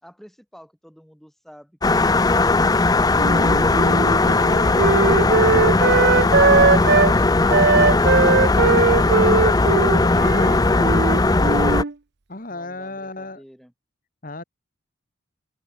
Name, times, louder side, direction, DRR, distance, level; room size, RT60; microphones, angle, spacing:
voice 1, 0.0-4.6 12.5-13.7, equal, ahead, 5.6 m, -49 dB
sound 1, 1.8-11.8, left 2 dB, 20° left, 0.5 m, -18 dB
Wind instrument woodwind instrument, 3.2-7.1 7.5-11.9, right 4 dB, 50° right, 0.7 m, -19 dB
voice 2, 5.3-5.8 10.0-10.9 12.3-13.4 14.2-14.4, left 2 dB, 40° left, 2.2 m, -35 dB
open air
head